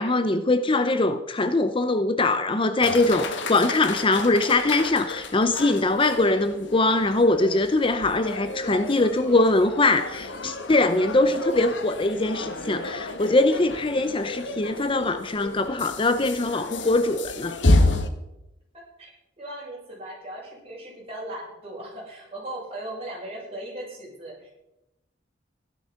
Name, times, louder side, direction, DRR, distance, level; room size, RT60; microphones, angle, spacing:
voice 1, 0.0-17.6, left 2 dB, 30° left, 0.7 m, -22 dB
sound 1, 2.8-18.1, left 2 dB, 80° left, 1.5 m, -30 dB
voice 2, 18.7-19.1 19.4-24.5, right 1 dB, 35° right, 7.5 m, -38 dB
15.0 x 12.0 x 5.9 m
head